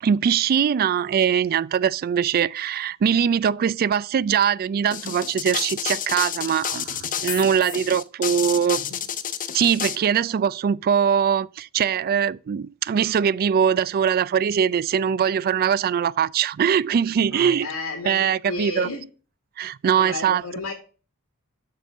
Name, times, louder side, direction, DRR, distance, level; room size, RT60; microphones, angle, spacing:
voice 1, 0.0-8.8 9.5-17.7 18.1-18.9 19.6-20.4, right 8 dB, 45° right, 0.3 m, -22 dB
sound 1, 4.9-10.0, left 9 dB, 40° left, 0.6 m, -30 dB
voice 2, 17.3-19.0 19.9-20.7, left 3 dB, 90° left, 1.7 m, -32 dB
6.8 x 6.0 x 5.7 m
head